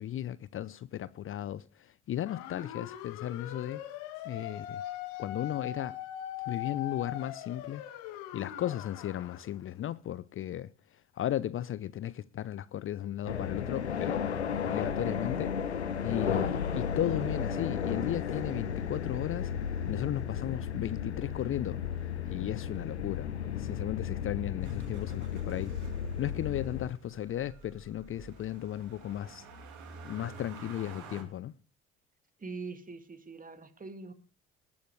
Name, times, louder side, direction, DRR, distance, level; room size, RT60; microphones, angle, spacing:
voice 1, 0.0-3.8 4.2-4.8 5.2-6.0 6.5-7.8 8.3-10.7 11.1-14.2 14.6-19.5 19.9-21.8 22.3-25.7 26.2-29.5 30.0-31.5, left 11 dB, 40° left, 0.6 m, -35 dB
sound 1, 2.3-9.5, left 12 dB, 70° left, 1.8 m, -41 dB
sound 2, 13.3-26.9, left 7 dB, 90° left, 1.0 m, -34 dB
Motor vehicle (road), 24.6-31.2, right 3 dB, 65° right, 3.1 m, -50 dB
voice 2, 32.4-34.1, right 4 dB, 25° right, 2.3 m, -43 dB
19.5 x 12.5 x 3.3 m
figure-of-eight pair, 50°, 32 cm